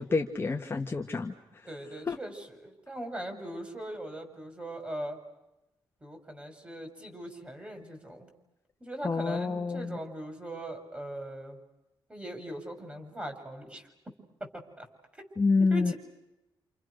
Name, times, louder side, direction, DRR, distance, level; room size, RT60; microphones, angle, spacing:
voice 1, 0.0-1.3 2.1-2.2 9.0-10.0 15.4-15.9, left 4 dB, 25° left, 3 dB, 1.6 m, -27 dB
voice 2, 1.7-5.2 6.0-8.3 8.8-11.6 12.1-13.9 14.4-14.9 15.2-15.3 15.7-15.9, right 1 dB, 15° right, 5 dB, 6.3 m, -40 dB
29.0 x 29.0 x 6.5 m, 0.92 s
cardioid pair, 115°, 9 cm